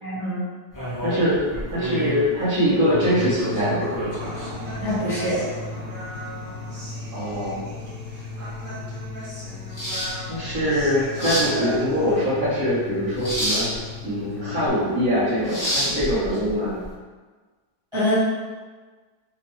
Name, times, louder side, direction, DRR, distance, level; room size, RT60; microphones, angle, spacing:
voice 1, 0.0-0.4 4.7-5.4 17.9-18.1, left 1 dB, 20° right, -13 dB, 1.0 m, -24 dB
sound 1, 0.7-16.9, equal, 20° left, 0.6 m, -31 dB
voice 2, 1.0-1.4 1.7-4.3 7.1-7.6 10.3-16.8, equal, 60° right, -12 dB, 1.4 m, -23 dB
sound 2, 2.9-14.7, left 4 dB, 60° left, 1.2 m, -37 dB
Human voice, 4.2-12.2, equal, 80° right, 1.8 m, -38 dB
3.4 x 2.9 x 3.0 m, 1.4 s
omnidirectional pair, 1.9 m